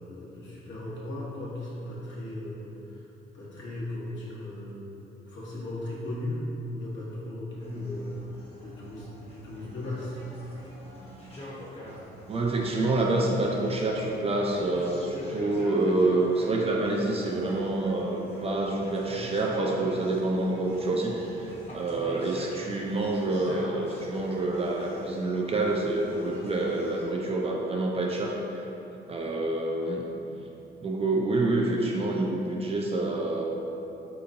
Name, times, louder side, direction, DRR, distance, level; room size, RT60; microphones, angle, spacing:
voice 1, 0.0-3.0 3.3-4.8 5.2-10.2, left 1 dB, 65° left, -7 dB, 1.1 m, -37 dB
sound 1, 7.6-27.0, equal, 30° left, 0.9 m, -45 dB
voice 2, 12.3-28.6 29.1-30.1 30.8-33.4, right 2 dB, 30° right, -1 dB, 0.4 m, -27 dB
4.2 x 2.9 x 2.6 m, 3.0 s
cardioid pair, 90°, 20 cm